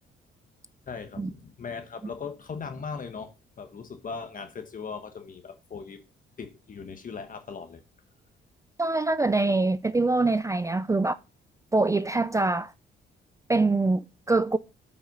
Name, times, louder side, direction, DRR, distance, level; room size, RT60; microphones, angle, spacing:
voice 1, 0.9-6.0 6.4-7.8, left 5 dB, 45° left, 1.3 m, -39 dB
voice 2, 8.8-11.2 11.7-12.7 13.5-14.0 14.3-14.6, right 3 dB, 15° right, 0.4 m, -24 dB
8.6 x 5.6 x 5.4 m
cardioid pair, 90°, 20 cm